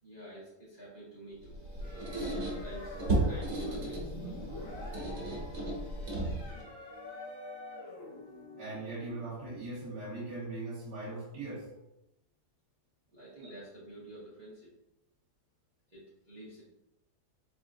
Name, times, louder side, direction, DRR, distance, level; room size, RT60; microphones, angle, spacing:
voice 1, 0.0-3.0 3.3-4.5 13.1-14.7 15.9-16.6, right 1 dB, 35° right, -9 dB, 0.8 m, -49 dB
Squeak, 1.4-6.7, right 2 dB, 55° right, 1.4 m, -35 dB
sound 1, 1.8-9.2, left 1 dB, 50° left, 1.5 m, -46 dB
voice 2, 8.6-11.7 13.4-13.5, right 2 dB, 75° right, -4 dB, 1.5 m, -40 dB
4.1 x 3.5 x 2.6 m, 0.92 s
omnidirectional pair, 1.8 m